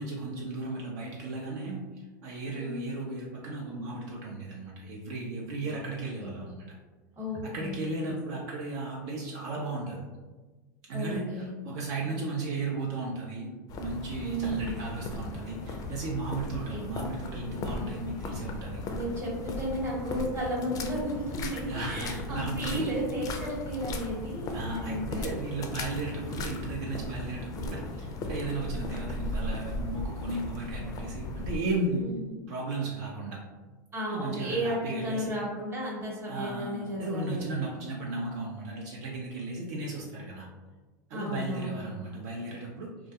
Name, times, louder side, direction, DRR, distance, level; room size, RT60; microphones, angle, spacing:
voice 1, 0.0-1.8 2.2-6.6 7.4-10.0 10.9-18.8 21.6-23.0 24.5-32.1 32.5-33.4 34.1-35.3 36.3-40.5 41.1-42.9, right 2 dB, 65° right, -3 dB, 0.5 m, -35 dB
voice 2, 2.5-3.0 5.7-5.8 6.2-6.5 7.2-8.2 10.9-11.5 14.2-14.8 16.7-16.9 18.9-25.2 32.0-32.4 33.9-37.6 41.1-42.1, equal, 25° right, -4 dB, 1.0 m, -34 dB
sound 1, 13.7-31.6, left 2 dB, 35° left, 0.4 m, -37 dB
2.3 x 2.2 x 2.7 m, 1.3 s
hypercardioid pair, 95°, 10 cm